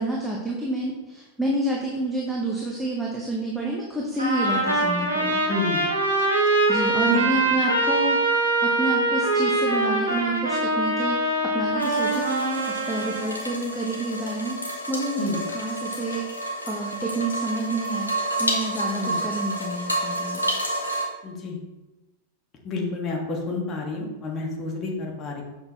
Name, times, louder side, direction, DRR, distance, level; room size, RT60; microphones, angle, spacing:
voice 1, 0.0-5.4 6.7-8.2 8.6-20.5, right 2 dB, ahead, -4 dB, 1.2 m, -29 dB
Trumpet, 4.2-13.2, right 2 dB, 80° right, 2.1 m, -23 dB
voice 2, 5.5-5.9 7.0-7.5 15.2-15.4 19.0-19.2 21.2-21.6 22.6-25.4, left 3 dB, 30° left, 0 dB, 1.7 m, -30 dB
sound 1, 11.8-21.0, right 1 dB, 85° left, 1.3 m, -30 dB
7.7 x 6.5 x 3.1 m, 1.0 s
figure-of-eight pair, 90°, 0 cm